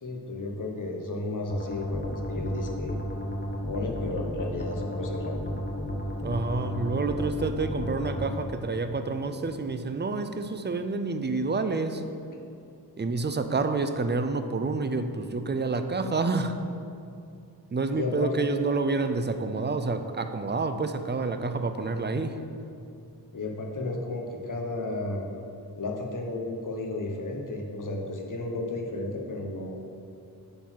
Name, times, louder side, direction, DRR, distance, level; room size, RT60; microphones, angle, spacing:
voice 1, 0.0-3.0 3.7-5.4 17.9-18.4 23.3-25.3 25.8-29.8, left 2 dB, 50° left, 1 dB, 1.0 m, -33 dB
sound 1, 1.5-8.3, equal, 25° left, 0.9 m, -33 dB
voice 2, 6.2-12.0 13.0-16.6 17.7-22.4, right 3 dB, 30° right, 9 dB, 0.4 m, -28 dB
8.3 x 4.0 x 6.2 m, 2.6 s
wide cardioid pair, 80°, 40 cm